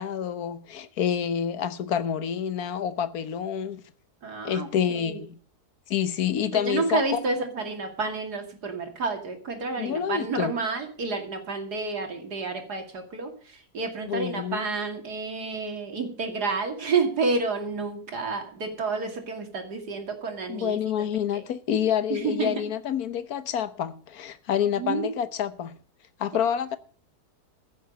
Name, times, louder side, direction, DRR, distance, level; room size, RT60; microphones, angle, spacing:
voice 1, 0.0-3.8 4.4-5.4 5.9-7.2 9.8-10.5 14.0-14.6 20.5-25.8 26.2-26.8, left 8 dB, 70° left, 1.4 m, -28 dB
voice 2, 4.2-5.2 6.5-20.8 21.3-21.4 22.1-22.6 24.8-25.2, right 4 dB, 85° right, 2.9 m, -30 dB
15.5 x 7.2 x 6.5 m
omnidirectional pair, 1.7 m